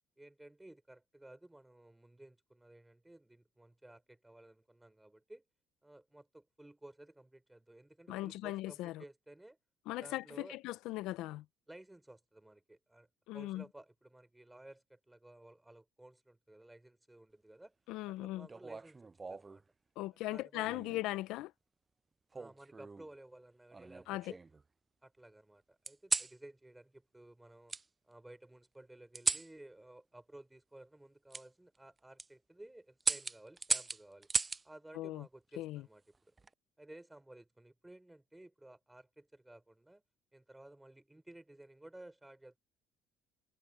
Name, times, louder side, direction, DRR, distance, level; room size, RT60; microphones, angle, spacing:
voice 1, 0.2-5.4 5.8-9.6 10.0-10.6 11.7-13.1 13.3-17.7 18.1-19.6 20.3-21.0 22.3-24.4 25.0-27.8 28.0-34.3 34.6-36.3 36.8-40.0 40.3-42.6, right 1 dB, 10° right, 4.3 m, -56 dB
voice 2, 8.1-9.0 9.9-11.4 13.3-13.6 17.9-18.5 20.0-21.5 24.1-24.3 34.9-35.3 35.6-35.8, left 17 dB, 75° left, 0.8 m, -39 dB
sound 1, 18.5-19.6 20.6-21.1 22.3-23.1 23.7-24.6 25.9-26.4 27.7-27.8 29.1-29.5 31.3-31.5 32.0-32.3 33.0-34.6 36.1-36.5, right 4 dB, 25° right, 0.4 m, -37 dB
supercardioid pair, 70°, 0 cm